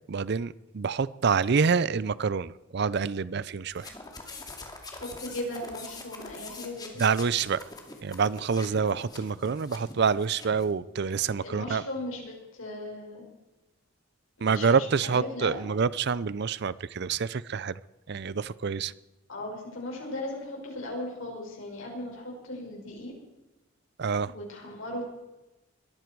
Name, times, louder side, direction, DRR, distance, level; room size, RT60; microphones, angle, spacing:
voice 1, 0.1-3.9 7.0-7.6 8.0-11.8 14.4-17.8 18.1-18.9 24.0-24.3, right 5 dB, 55° right, 19 dB, 0.5 m, -27 dB
sound 1, 3.7-10.7, left 3 dB, 20° left, 2.3 m, -44 dB
voice 2, 4.9-6.9 11.4-13.2 14.4-15.6 19.3-23.1 24.3-25.0, left 1 dB, 85° left, -1 dB, 6.1 m, -37 dB
21.0 x 14.5 x 4.7 m, 1.0 s
head